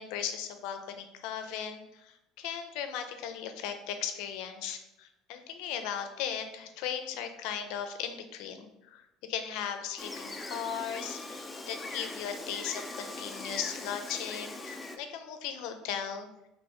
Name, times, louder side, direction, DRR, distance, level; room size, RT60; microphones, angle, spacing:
voice 1, 0.0-16.3, left 8 dB, 70° left, 7 dB, 0.5 m, -37 dB
Gull seagull, 10.0-15.0, left 2 dB, 10° left, 0.4 m, -41 dB
4.5 x 2.9 x 3.2 m, 0.88 s
cardioid pair, 155°, 0 cm